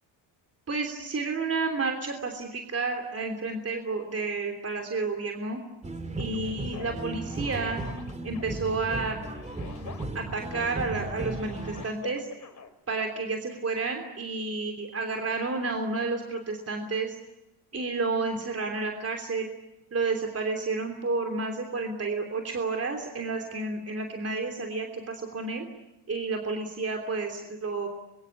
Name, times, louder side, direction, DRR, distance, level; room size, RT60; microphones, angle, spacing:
voice 1, 0.7-5.6 6.2-7.8 8.2-9.3 10.1-12.3 12.9-17.2 17.7-19.5 19.9-25.6 26.1-27.9, right 3 dB, 30° right, 3 dB, 3.3 m, -31 dB
sound 1, 5.8-11.9, right 2 dB, 15° right, 2.2 m, -36 dB
sound 2, 6.2-12.7, left 5 dB, 35° left, 4.2 m, -47 dB
25.0 x 23.0 x 9.9 m, 0.90 s
cardioid pair, 95°, 47 cm